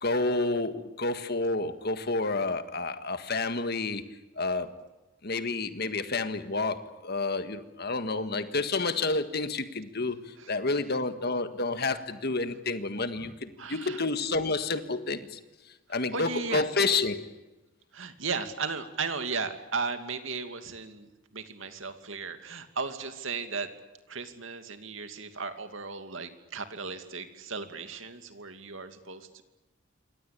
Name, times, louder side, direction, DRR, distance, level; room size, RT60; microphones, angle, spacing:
voice 1, 0.0-4.9 5.2-15.4 15.9-17.3, left 3 dB, 50° left, 10 dB, 1.7 m, -30 dB
voice 2, 13.6-14.0 15.9-16.6 17.9-23.7 24.1-29.4, right 4 dB, 70° right, 8 dB, 2.5 m, -36 dB
28.0 x 24.0 x 8.5 m, 1.1 s
head